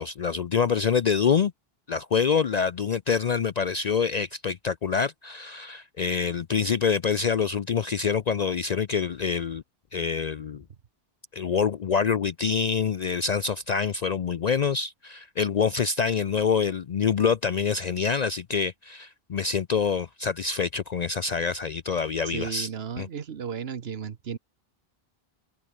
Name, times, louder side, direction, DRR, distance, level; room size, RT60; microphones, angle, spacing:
voice 1, 0.0-1.5 1.9-9.6 9.9-10.6 11.3-22.7 23.0-23.1, left 6 dB, 50° left, 0.6 m, -26 dB
voice 2, 22.3-24.4, right 7 dB, 80° right, 1.3 m, -34 dB
open air
omnidirectional pair, 1.0 m